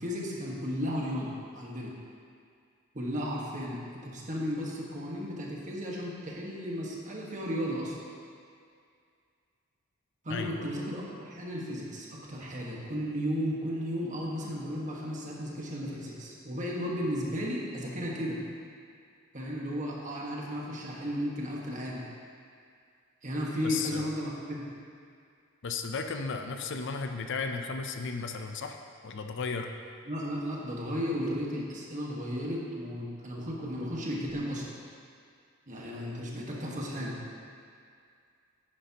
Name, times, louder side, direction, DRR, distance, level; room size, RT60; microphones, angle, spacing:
voice 1, 0.0-1.9 2.9-8.0 10.2-18.4 19.3-22.0 23.2-24.6 30.0-34.7 35.7-37.2, equal, 35° right, -4 dB, 1.5 m, -34 dB
voice 2, 10.3-10.7 23.6-24.1 25.6-28.8 29.0-29.7, left 4 dB, 60° left, 5 dB, 0.6 m, -34 dB
10.5 x 9.8 x 3.0 m, 2.3 s
head